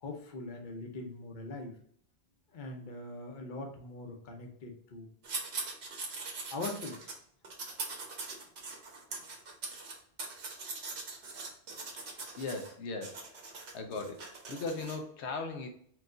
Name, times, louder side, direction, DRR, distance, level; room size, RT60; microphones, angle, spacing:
voice 1, 0.0-1.7 2.5-5.1 6.5-7.1, left 2 dB, 50° left, 3 dB, 0.9 m, -42 dB
sound 1, 5.2-7.2 7.4-12.7 13.0-15.0, right 3 dB, 80° right, 1.2 m, -42 dB
voice 2, 12.0-13.5 13.7-15.7, left 3 dB, 85° left, 4 dB, 0.9 m, -39 dB
4.6 x 2.4 x 3.7 m, 0.63 s
omnidirectional pair, 1.1 m